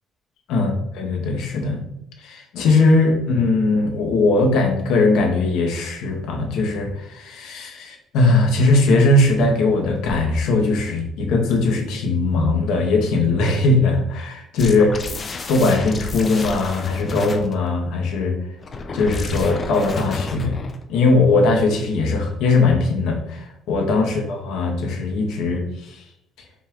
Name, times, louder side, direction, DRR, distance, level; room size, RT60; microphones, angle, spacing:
voice 1, 0.5-1.8 2.2-15.1 15.5-18.4 18.9-20.6 20.9-26.0, left 3 dB, 75° left, 2 dB, 1.0 m, -19 dB
sound 1, 14.6-17.5 18.6-20.8, left 3 dB, 25° left, 0.4 m, -31 dB
5.3 x 2.4 x 3.6 m, 0.76 s
cardioid pair, 180°, 0 cm